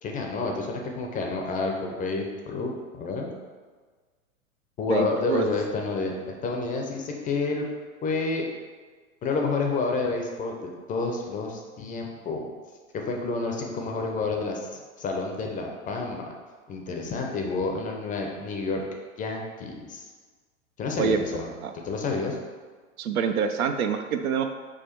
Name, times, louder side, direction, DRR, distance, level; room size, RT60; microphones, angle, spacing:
voice 1, 0.0-3.3 4.8-7.6 8.0-8.4 9.2-10.6 10.9-12.5 12.9-14.7 15.0-16.3 16.7-18.8 19.2-20.1 20.8-22.4, left 3 dB, 20° left, 1 dB, 0.4 m, -29 dB
voice 2, 4.9-5.5 21.0-21.2 21.6-21.7 23.0-24.5, right 6 dB, 85° right, 7 dB, 0.5 m, -26 dB
4.9 x 2.2 x 4.3 m, 1.4 s
hypercardioid pair, 100°, 42 cm